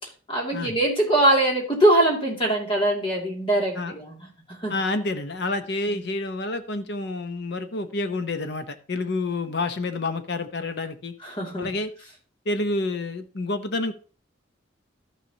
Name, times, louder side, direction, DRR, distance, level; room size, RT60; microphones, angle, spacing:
voice 1, 0.3-4.3 4.6-4.7 5.9-6.0 11.2-11.8, right 1 dB, 30° left, -1 dB, 2.4 m, -22 dB
voice 2, 4.7-11.1 11.6-11.9 12.5-13.9, left 2 dB, 60° left, 9 dB, 0.8 m, -28 dB
13.0 x 6.1 x 2.8 m, 0.39 s
head